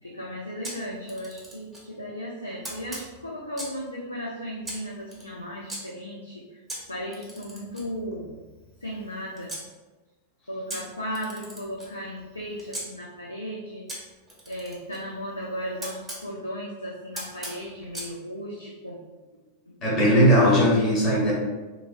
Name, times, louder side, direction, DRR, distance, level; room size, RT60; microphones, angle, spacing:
voice 1, 0.0-6.6 6.9-8.3 8.8-9.5 10.5-13.9 14.5-19.2 19.7-19.8, equal, 85° left, -3 dB, 0.3 m, -36 dB
Camera, 0.6-1.9 2.6-3.9 4.6-5.8 6.7-9.7 10.7-12.9 13.9-16.2 17.1-18.1, right 1 dB, 10° right, 0.9 m, -40 dB
voice 2, 19.8-21.3, equal, 30° left, -5 dB, 1.1 m, -18 dB
2.9 x 2.4 x 2.6 m, 1.2 s
figure-of-eight pair, 90°, 0 cm